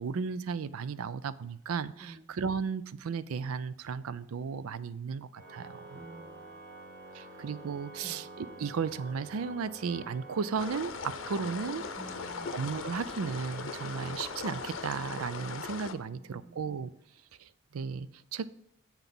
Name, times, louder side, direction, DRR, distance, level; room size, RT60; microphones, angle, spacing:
voice 1, 0.0-6.0 7.1-11.8 12.5-16.9 17.4-18.5, right 5 dB, 85° right, 15 dB, 0.4 m, -35 dB
Organ, 5.3-16.3, right 1 dB, 45° right, 1.8 m, -48 dB
voice 2, 5.9-6.6 7.0-7.5 8.0-8.2 12.0-12.6 16.1-16.6, right 2 dB, 15° right, 6 dB, 0.5 m, -50 dB
sound 1, 10.6-15.9, left 5 dB, 70° left, 0.7 m, -39 dB
7.2 x 5.9 x 5.3 m, 0.73 s
head